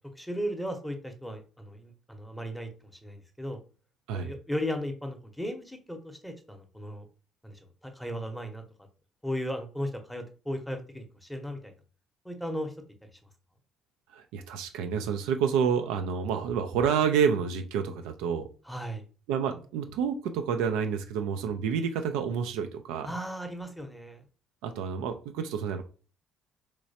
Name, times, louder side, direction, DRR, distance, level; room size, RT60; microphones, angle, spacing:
voice 1, 0.2-3.6 4.1-7.1 7.4-8.6 9.2-11.7 12.2-12.7 18.7-19.0 23.0-24.2, equal, ahead, 5 dB, 0.8 m, -36 dB
voice 2, 14.1-18.5 19.3-23.1 24.6-25.8, right 7 dB, 70° right, 7 dB, 0.3 m, -29 dB
3.1 x 3.1 x 2.7 m, 0.37 s
hypercardioid pair, 50°, 0 cm